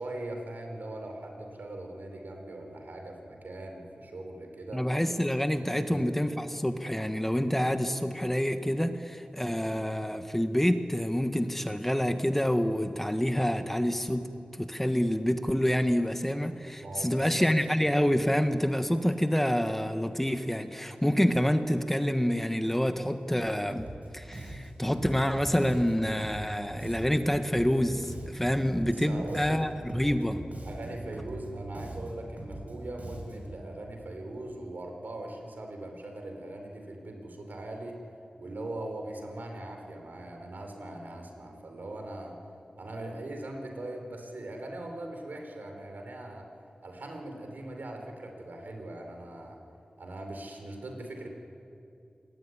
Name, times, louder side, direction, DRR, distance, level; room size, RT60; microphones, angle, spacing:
voice 1, 0.0-4.9 5.6-6.0 16.8-17.5 28.8-29.6 30.6-38.0 38.4-42.4 42.8-46.5 46.8-49.6 50.0-51.3, right 1 dB, 80° right, 3 dB, 5.0 m, -40 dB
voice 2, 4.7-14.3 14.6-23.9 24.1-30.4, equal, 10° left, 7 dB, 1.4 m, -27 dB
Bass guitar, 23.7-24.1 24.3-29.0 29.3-33.6, right 1 dB, 60° right, 6.0 m, -42 dB
27.5 x 21.5 x 9.8 m, 2.6 s
wide cardioid pair, 90°, 3 cm